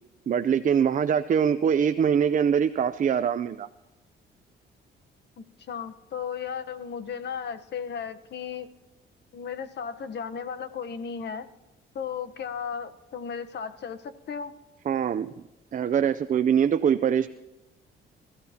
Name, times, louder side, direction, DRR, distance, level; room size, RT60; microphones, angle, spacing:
voice 1, 0.3-3.7 14.9-15.3 15.7-17.3, right 8 dB, 40° right, 11 dB, 0.5 m, -23 dB
voice 2, 5.4-8.7 9.3-11.5 11.9-14.5, left 7 dB, 60° left, 10 dB, 1.1 m, -35 dB
25.5 x 14.5 x 2.9 m, 1.0 s
cardioid pair, 90°, 20 cm